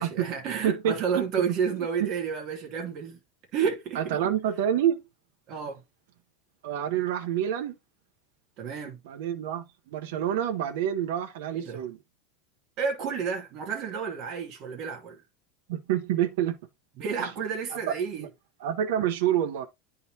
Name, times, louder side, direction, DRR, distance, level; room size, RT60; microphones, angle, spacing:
voice 1, 0.0-3.2 3.5-4.3 5.5-5.8 8.6-9.0 11.5-11.8 12.8-15.2 17.0-18.3, right 6 dB, 35° right, 1.1 m, -31 dB
voice 2, 0.6-1.2 1.7-2.1 3.9-5.0 6.6-7.8 9.0-12.0 15.7-16.6 17.2-17.3 17.9-18.3 18.6-19.7, right 10 dB, 65° right, 0.8 m, -28 dB
10.5 x 3.8 x 2.7 m
supercardioid pair, 180°, 0 cm